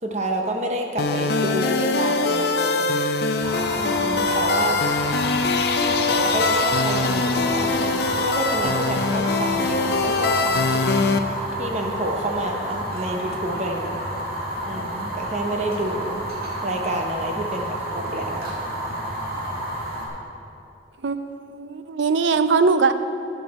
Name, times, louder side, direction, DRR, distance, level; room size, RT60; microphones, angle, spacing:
voice 1, 0.0-2.9 3.7-4.8 5.8-11.2 11.6-13.9 14.6-16.3 16.6-18.5, right 1 dB, 40° right, 2 dB, 0.8 m, -29 dB
sound 1, 1.0-11.2, left 3 dB, 65° left, 0.5 m, -22 dB
Fire, 3.4-20.1, right 1 dB, 55° right, 1.8 m, -30 dB
voice 2, 21.0-22.9, right 4 dB, 90° right, 11 dB, 0.5 m, -21 dB
12.5 x 8.0 x 4.2 m, 2.6 s
head